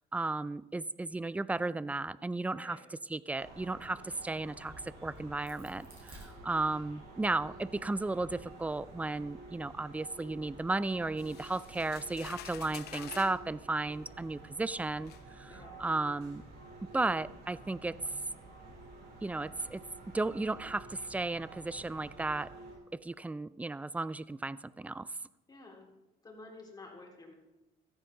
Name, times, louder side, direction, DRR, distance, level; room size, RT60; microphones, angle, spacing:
voice 1, 0.1-2.8 3.1-15.1 15.4-16.4 16.9-18.2 19.2-19.8 20.1-22.5 22.9-25.1, right 2 dB, 10° right, 18 dB, 0.4 m, -34 dB
sound 1, 3.4-22.8, right 2 dB, 75° right, 5.7 m, -51 dB
Crack, 4.5-7.0 7.6-9.2, equal, 35° right, 6.2 m, -56 dB
sound 2, 11.2-13.4 14.4-14.5 15.1-15.2, left 11 dB, 70° left, 0.9 m, -48 dB
voice 2, 15.5-15.9 25.5-25.9 26.2-27.3, left 2 dB, 25° left, -1 dB, 4.2 m, -51 dB
15.5 x 14.0 x 3.8 m, 0.97 s
cardioid pair, 110°, 17 cm